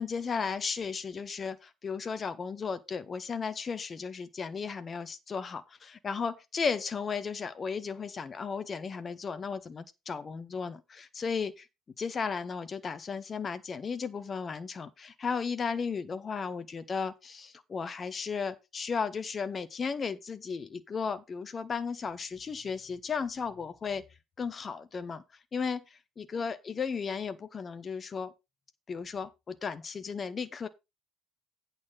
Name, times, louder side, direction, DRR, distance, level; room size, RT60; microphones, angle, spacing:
voice 1, 0.0-11.7 12.0-24.0 24.4-25.2 25.5-28.3 28.9-30.7, left 5 dB, 30° left, 0.9 m, -35 dB
8.8 x 5.7 x 5.6 m
figure-of-eight pair, 60°, 0 cm